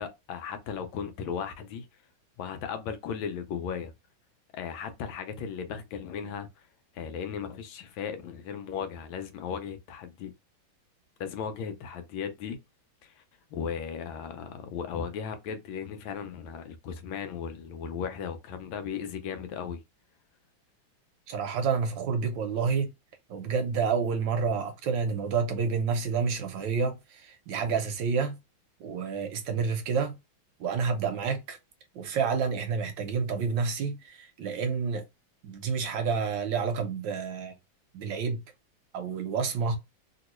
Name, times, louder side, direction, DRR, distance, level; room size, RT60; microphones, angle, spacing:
voice 1, 0.0-1.9 2.4-3.9 4.5-6.5 6.9-10.3 11.2-12.6 13.0-13.2 13.5-19.8, left 7 dB, 80° left, 1.3 m, -36 dB
voice 2, 21.3-22.9 23.3-28.4 28.8-30.1 30.6-31.6 31.9-35.0 35.4-37.5 37.9-38.4 38.9-39.8, right 5 dB, 75° right, 1.2 m, -29 dB
2.9 x 2.9 x 3.0 m
omnidirectional pair, 2.2 m